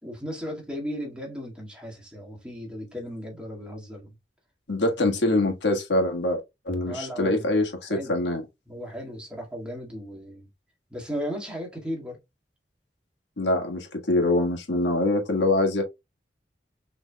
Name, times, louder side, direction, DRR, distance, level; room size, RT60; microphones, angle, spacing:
voice 1, 0.0-4.1 6.8-8.1 8.7-10.5 10.9-12.2, equal, 5° right, 1.9 m, -36 dB
voice 2, 4.7-6.4 6.6-8.4 13.4-15.8, left 2 dB, 85° left, 1.6 m, -24 dB
6.1 x 3.4 x 2.2 m
head